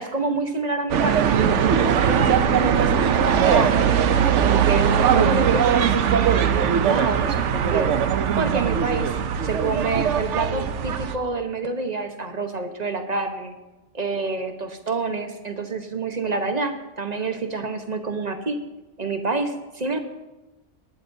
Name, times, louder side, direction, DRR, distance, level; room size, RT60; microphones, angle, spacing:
voice 1, 0.0-3.9 4.4-7.9 8.4-9.1 9.4-13.6 13.9-18.6 19.0-20.0, right 3 dB, 35° right, 6 dB, 1.1 m, -27 dB
sound 1, 0.9-11.2, right 8 dB, 65° right, 1.0 m, -20 dB
19.5 x 12.5 x 2.7 m, 1.1 s
omnidirectional pair, 1.4 m